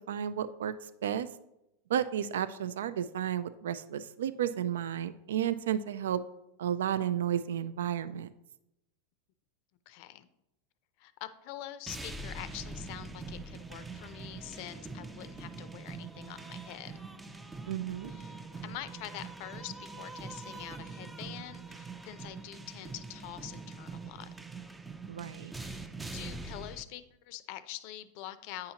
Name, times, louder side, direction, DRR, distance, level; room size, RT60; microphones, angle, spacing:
voice 1, 0.1-1.3 1.9-6.2 6.6-8.3 17.7-18.1 25.1-25.5, right 10 dB, 90° right, 14 dB, 0.3 m, -32 dB
voice 2, 9.9-10.3 11.0-16.9 18.1-24.3 25.6-28.7, left 13 dB, 55° left, 13 dB, 0.5 m, -45 dB
sound 1, 11.9-26.8, right 3 dB, 10° right, 0.4 m, -44 dB
8.7 x 5.6 x 2.8 m, 0.86 s
supercardioid pair, 140°, 0 cm